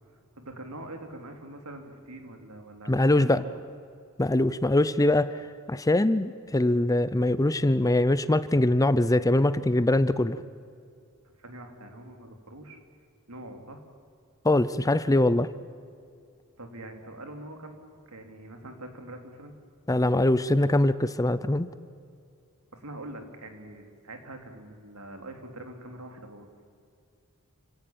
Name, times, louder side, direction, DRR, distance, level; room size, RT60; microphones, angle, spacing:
voice 1, 0.4-3.5 11.4-12.8 13.3-13.8 16.6-17.8 18.1-19.5 22.7-26.5, right 1 dB, 80° right, 5 dB, 3.3 m, -43 dB
voice 2, 2.9-3.4 4.2-10.4 14.4-15.5 19.9-21.7, left 1 dB, 15° left, 14 dB, 0.6 m, -23 dB
29.0 x 17.0 x 8.8 m, 2.4 s
head